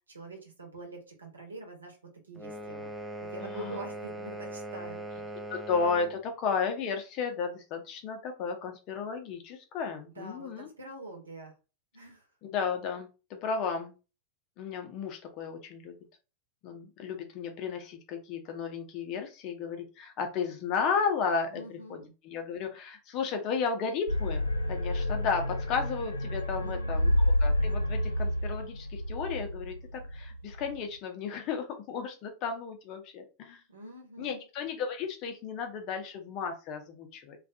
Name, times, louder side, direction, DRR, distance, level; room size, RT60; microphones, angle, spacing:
voice 1, 0.1-2.0 2.3-2.9 3.2-5.0 10.1-11.5 11.9-12.3 21.5-22.1 26.5-27.2 33.7-34.4, right 2 dB, 75° right, 1 dB, 1.0 m, -45 dB
sound 1, 2.4-6.2, right 1 dB, 5° right, 0.4 m, -40 dB
voice 2, 3.4-3.8 5.5-10.7 12.4-13.9 14.6-16.0 16.6-24.4 24.7-27.1 27.4-33.6 34.2-37.4, left 5 dB, 40° left, 5 dB, 0.6 m, -33 dB
sound 2, 24.1-30.8, left 1 dB, 85° left, 0.4 m, -29 dB
2.4 x 2.3 x 2.6 m, 0.31 s
figure-of-eight pair, 90°, 0 cm